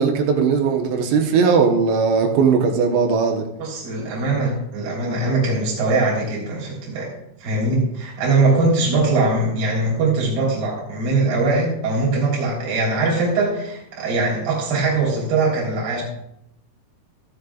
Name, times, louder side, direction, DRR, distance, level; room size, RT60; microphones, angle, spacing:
voice 1, 0.0-3.5, right 5 dB, 75° right, 3 dB, 2.8 m, -18 dB
voice 2, 3.6-7.1 7.4-16.0, right 3 dB, 45° right, -4 dB, 4.8 m, -21 dB
14.5 x 12.5 x 2.4 m, 0.78 s
omnidirectional pair, 6.0 m